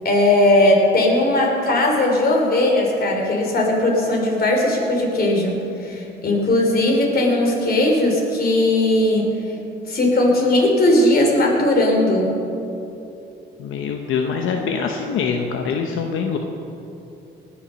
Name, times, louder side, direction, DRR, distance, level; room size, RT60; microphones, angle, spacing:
voice 1, 0.0-9.3 9.9-12.3, left 1 dB, 50° left, 0 dB, 3.5 m, -18 dB
voice 2, 13.6-16.4, left 6 dB, 85° left, 3 dB, 0.9 m, -24 dB
19.0 x 7.1 x 6.4 m, 2.8 s
cardioid pair, 90°, 20 cm